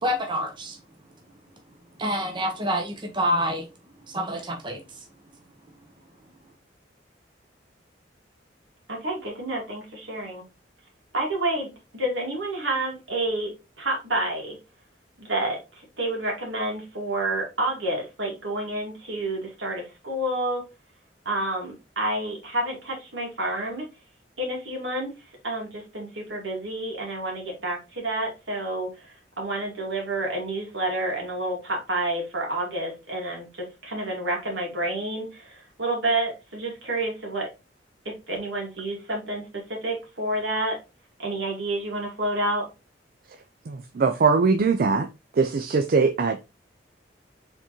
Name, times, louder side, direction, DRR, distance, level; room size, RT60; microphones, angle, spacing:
voice 1, 0.0-0.8 2.0-3.6 4.1-4.8, equal, 25° right, 0.8 m, -27 dB
voice 2, 8.9-10.4 11.1-14.6 15.2-20.7 21.3-23.9 24.4-25.1 25.4-37.5 38.1-40.8 41.2-42.7, right 1 dB, 80° right, 2.2 m, -29 dB
voice 3, 43.7-45.1 45.4-46.4, right 4 dB, 50° right, 0.4 m, -21 dB
4.7 x 3.6 x 3.0 m
head